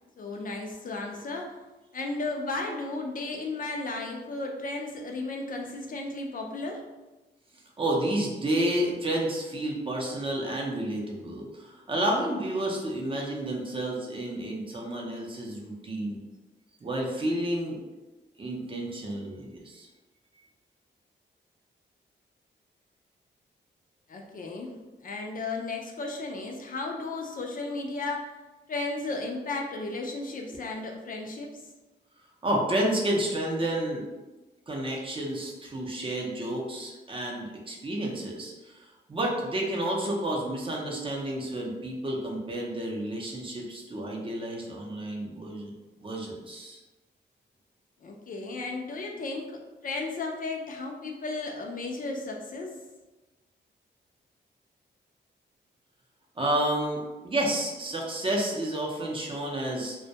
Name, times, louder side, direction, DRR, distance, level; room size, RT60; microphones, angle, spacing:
voice 1, 0.2-1.5 1.9-6.8 24.1-24.8 25.0-28.3 28.7-31.5 48.0-52.8, left 3 dB, 50° left, 1 dB, 0.4 m, -34 dB
voice 2, 7.8-16.2 16.8-17.8 18.4-19.9 32.4-34.0 34.7-45.7 46.0-46.8 56.4-60.0, right 1 dB, 30° right, -2 dB, 0.5 m, -30 dB
2.1 x 2.1 x 2.7 m, 1.1 s
cardioid pair, 95°, 19 cm